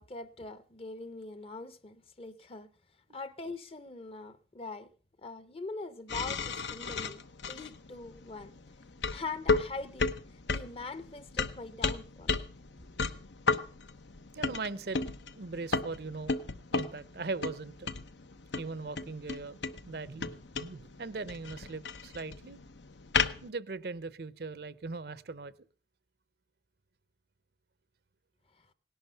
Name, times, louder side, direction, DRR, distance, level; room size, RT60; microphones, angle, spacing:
voice 1, 0.0-2.7 3.1-4.9 5.2-8.6 9.1-10.1 10.5-12.4, left 3 dB, 30° left, 0.8 m, -42 dB
sound 1, 6.1-23.5, left 4 dB, 80° left, 0.9 m, -35 dB
voice 2, 14.3-15.0 15.3-16.4 16.7-17.9 18.6-19.6 19.9-22.6 23.4-25.5, right 3 dB, 60° right, 0.6 m, -39 dB
18.0 x 11.5 x 5.5 m
head